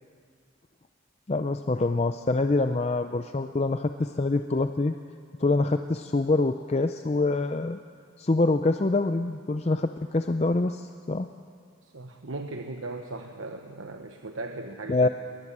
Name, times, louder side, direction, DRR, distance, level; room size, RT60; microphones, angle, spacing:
voice 1, 1.3-4.9 5.4-7.8 8.2-11.3 14.9-15.1, left 2 dB, 30° left, 8 dB, 0.5 m, -25 dB
voice 2, 11.8-15.1, right 2 dB, 80° right, 4 dB, 1.1 m, -38 dB
21.0 x 20.5 x 7.4 m, 2.1 s
head